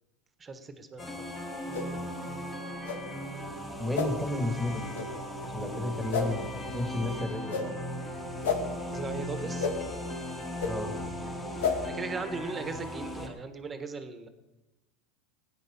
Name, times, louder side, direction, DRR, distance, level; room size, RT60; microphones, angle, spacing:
voice 1, 0.4-1.0 8.8-9.7 11.8-14.3, right 4 dB, 20° right, 8 dB, 1.6 m, -38 dB
sound 1, 1.0-13.3, equal, 20° left, 2.3 m, -37 dB
sound 2, 1.7-1.9 2.8-3.0 3.9-4.1 4.9-5.1 6.1-6.3 7.5-7.7 8.4-8.6 9.6-9.7 10.6-10.7 11.6-11.7, left 6 dB, 80° left, 2.0 m, -29 dB
voice 2, 3.8-4.9 5.4-7.7 10.7-11.0, left 1 dB, ahead, 4 dB, 2.5 m, -32 dB
16.5 x 9.6 x 5.6 m, 1.0 s
hypercardioid pair, 110°, 0 cm